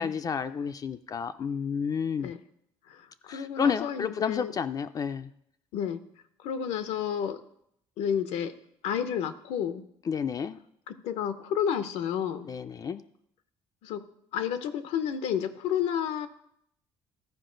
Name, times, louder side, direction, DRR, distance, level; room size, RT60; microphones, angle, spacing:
voice 1, 0.0-2.3 3.3-5.3 10.1-10.6 12.5-13.0, left 6 dB, 35° left, 10 dB, 0.4 m, -31 dB
voice 2, 2.9-4.5 5.7-6.0 6.4-7.4 8.0-8.5 8.8-9.9 10.9-12.5 13.8-14.0 14.3-16.3, left 8 dB, 85° left, 10 dB, 0.7 m, -31 dB
14.0 x 4.8 x 3.8 m, 0.73 s
cardioid pair, 110°, 11 cm